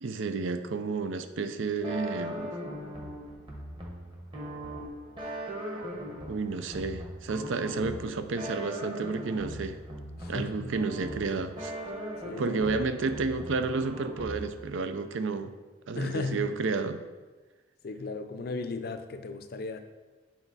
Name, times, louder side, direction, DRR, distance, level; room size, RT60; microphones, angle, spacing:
voice 1, 0.0-2.5 6.3-9.8 10.3-11.7 12.4-15.5 15.9-17.0, right 4 dB, 80° right, 10 dB, 0.5 m, -31 dB
sound 1, 1.8-14.7, equal, 25° right, 1.1 m, -39 dB
voice 2, 10.2-10.7 12.2-12.8 16.0-16.5 17.8-19.8, left 3 dB, 50° left, 8 dB, 0.5 m, -36 dB
8.2 x 4.4 x 4.0 m, 1.3 s
head